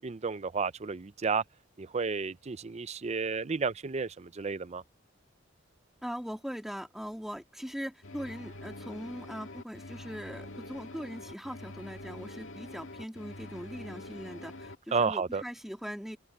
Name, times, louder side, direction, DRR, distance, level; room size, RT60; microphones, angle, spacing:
voice 1, 0.0-1.4 1.8-4.8 14.9-15.4, right 5 dB, 35° right, 0.5 m, -32 dB
voice 2, 6.0-16.2, equal, ahead, 2.4 m, -40 dB
sound 1, 8.0-14.8, left 2 dB, 80° left, 1.9 m, -45 dB
open air
head